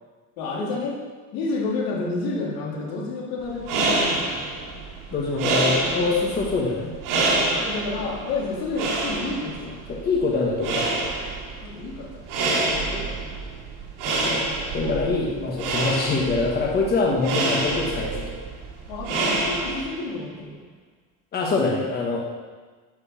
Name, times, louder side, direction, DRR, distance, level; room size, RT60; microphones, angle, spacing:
voice 1, 0.4-1.0 1.3-4.2 7.6-9.8 11.6-12.3 12.9-13.2 18.9-20.6 21.6-21.9, left 3 dB, 80° left, -3 dB, 3.5 m, -30 dB
sound 1, 3.5-20.1, right 2 dB, 90° right, 4.5 m, -27 dB
voice 2, 5.1-6.9 9.9-11.0 14.1-18.3 21.3-22.2, left 3 dB, 25° left, -2 dB, 1.3 m, -24 dB
10.5 x 6.9 x 7.3 m, 1.4 s
cardioid pair, 170°, 35 cm